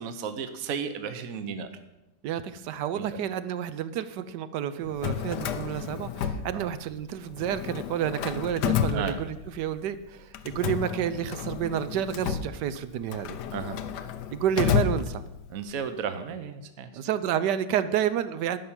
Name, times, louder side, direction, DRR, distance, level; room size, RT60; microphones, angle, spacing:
voice 1, 0.0-1.7 2.9-3.2 6.5-6.7 8.9-9.2 13.5-13.8 15.5-16.9, right 7 dB, 60° right, 9 dB, 1.2 m, -34 dB
voice 2, 2.2-13.4 14.3-15.2 16.9-18.6, right 9 dB, 75° right, 13 dB, 1.3 m, -30 dB
Drawer open or close, 4.8-7.0 7.3-9.7 10.3-15.6, left 8 dB, 75° left, 1.3 m, -31 dB
11.0 x 5.9 x 8.7 m, 0.95 s
omnidirectional pair, 1.9 m